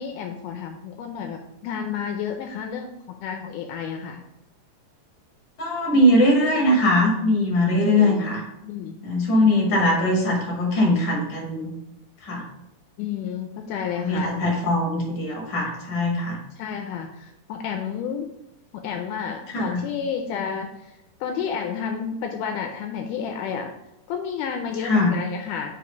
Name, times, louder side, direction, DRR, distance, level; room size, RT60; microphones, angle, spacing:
voice 1, 0.0-2.9 3.2-4.2 7.8-9.0 13.0-14.4 16.6-18.3 18.7-23.7 24.1-25.7, left 7 dB, 80° left, 4 dB, 2.0 m, -31 dB
voice 2, 5.6-8.4 9.0-11.7 12.2-12.4 14.0-16.4 19.5-19.8 24.8-25.1, left 1 dB, 40° left, -2 dB, 2.1 m, -21 dB
5.1 x 4.8 x 5.1 m, 0.85 s
omnidirectional pair, 3.8 m